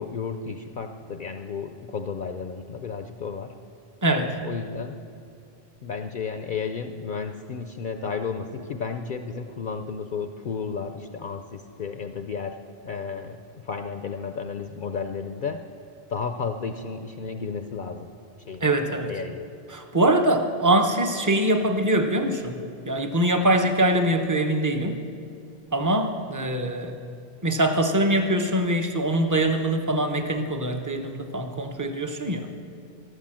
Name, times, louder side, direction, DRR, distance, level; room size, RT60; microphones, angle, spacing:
voice 1, 0.0-3.5 4.4-5.0 5.8-12.6 12.8-13.4 13.6-15.7 16.1-18.1 18.5-18.6 19.1-19.4, left 5 dB, 55° left, 7 dB, 0.7 m, -33 dB
voice 2, 4.0-4.4 18.6-19.1 19.7-22.6 22.9-25.0 25.7-26.9 27.4-32.5, right 1 dB, 20° right, 6 dB, 0.8 m, -23 dB
13.0 x 12.5 x 7.5 m, 2.5 s
omnidirectional pair, 1.1 m